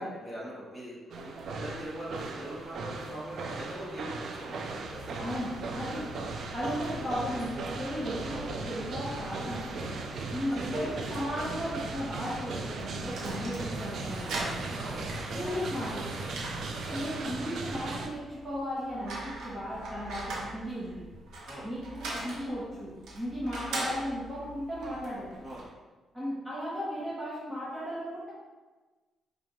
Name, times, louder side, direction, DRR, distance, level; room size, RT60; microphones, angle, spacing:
voice 1, 0.0-5.3 7.0-7.1 8.3-8.5 10.4-11.0 14.8-15.2 16.7-17.2 21.5-21.7 23.7-23.9 25.4-25.7, right 1 dB, 10° left, -7 dB, 1.4 m, -42 dB
sound 1, 1.1-18.1, right 3 dB, 60° right, 0.4 m, -38 dB
sound 2, 4.8-17.1, left 2 dB, 75° left, 0.7 m, -45 dB
voice 2, 5.2-6.1 6.5-9.9 10.3-14.7 15.3-16.3 16.9-21.0 21.6-25.3 26.1-28.3, equal, 15° right, -9 dB, 1.0 m, -36 dB
sound 3, 12.5-25.7, right 2 dB, 80° right, 0.9 m, -42 dB
5.0 x 2.4 x 3.1 m, 1.3 s
cardioid pair, 110°, 0 cm